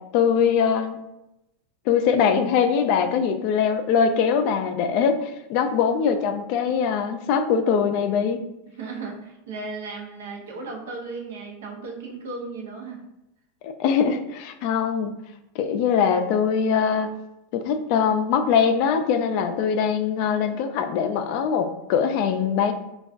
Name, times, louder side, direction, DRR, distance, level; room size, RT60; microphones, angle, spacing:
voice 1, 0.1-1.0 1.9-8.4 13.6-15.1 15.5-17.1 17.5-22.7, left 7 dB, 55° left, 7 dB, 0.3 m, -22 dB
voice 2, 8.8-13.0, right 3 dB, 85° right, 1 dB, 0.7 m, -35 dB
3.3 x 2.3 x 2.4 m, 0.89 s
supercardioid pair, 125°, 0 cm